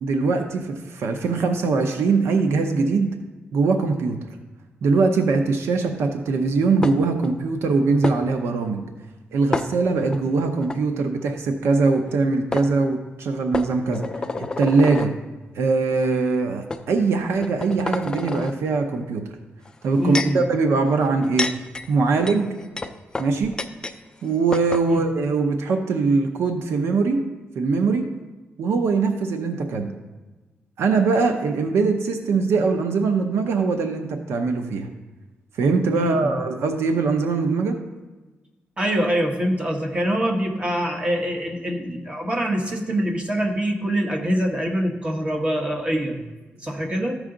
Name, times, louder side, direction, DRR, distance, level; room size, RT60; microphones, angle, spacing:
voice 1, 0.0-3.1 3.5-4.2 4.8-8.9 9.3-14.0 14.4-15.1 15.5-19.3 19.8-21.5 21.9-22.5 23.2-23.6 24.2-27.3 27.6-28.0 28.6-29.9 30.8-34.9 35.6-37.8, right 4 dB, 85° right, 6 dB, 0.7 m, -22 dB
sound 1, 6.8-7.3 8.0-8.2 9.5-10.2 10.6-10.8 12.1-12.2 12.5-12.7 13.5-15.1 15.9-16.1 16.7-16.8 17.4-18.5 19.6-20.4 21.1-24.0 24.2-24.3 24.5-24.9, left 3 dB, 20° left, 0.4 m, -29 dB
voice 2, 20.0-20.4 24.9-25.0 35.9-36.3 38.8-46.3 46.6-47.2, equal, 25° right, 2 dB, 1.1 m, -24 dB
13.5 x 4.8 x 3.8 m, 1.2 s
wide cardioid pair, 150°, 4 cm